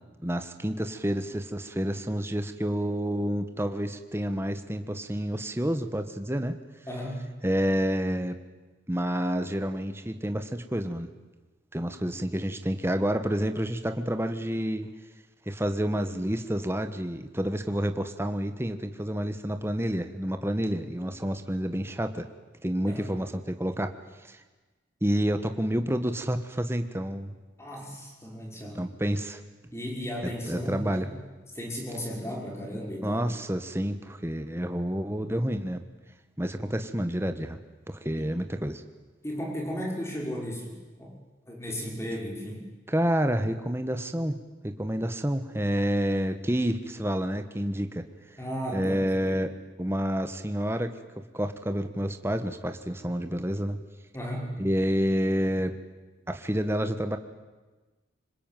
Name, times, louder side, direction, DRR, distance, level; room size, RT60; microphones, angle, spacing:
voice 1, 0.2-6.6 7.4-8.4 8.9-11.1 11.7-14.9 15.5-22.3 22.6-23.9 24.3-24.4 25.0-27.3 28.7-29.4 30.5-31.1 33.0-35.8 36.4-37.6 37.9-38.8 42.9-44.4 44.6-48.0 48.7-49.5 49.8-50.9 51.3-53.8 54.6-55.7 56.3-57.2, equal, 15° right, 8 dB, 1.4 m, -29 dB
voice 2, 6.9-7.3 22.9-23.1 27.6-28.8 29.7-31.1 31.5-33.3 38.2-38.3 39.2-41.2 41.5-42.7 48.4-49.4 54.1-54.5, equal, 15° left, 0 dB, 5.7 m, -35 dB
26.0 x 21.5 x 9.2 m, 1.2 s
head